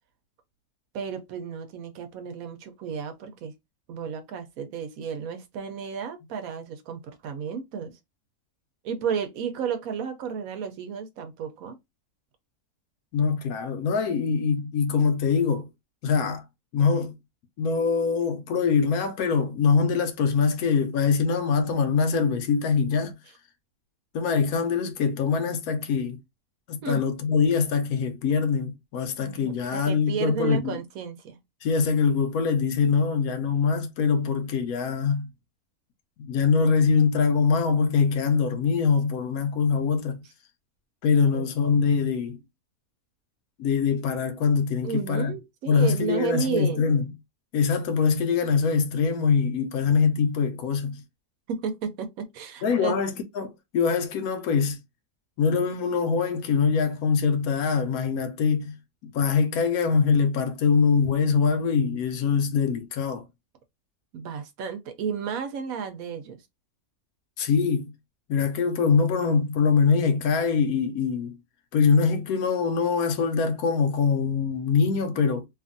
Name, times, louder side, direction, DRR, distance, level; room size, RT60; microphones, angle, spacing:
voice 1, 0.9-3.5 3.9-8.0 8.8-11.8 26.8-27.0 29.2-31.4 41.2-41.5 44.8-46.8 51.5-53.0 64.1-66.4, right 7 dB, 75° right, 1.0 m, -32 dB
voice 2, 13.1-15.7 16.0-16.4 16.7-17.1 17.6-23.1 24.1-26.2 26.7-30.8 31.6-35.3 36.2-40.2 41.0-42.4 43.6-45.3 45.7-47.1 47.5-51.0 52.6-54.8 55.4-58.7 59.0-63.2 67.4-67.9 68.3-71.4 71.7-75.5, left 5 dB, 80° left, 1.1 m, -23 dB
2.8 x 2.4 x 2.5 m
omnidirectional pair, 1.5 m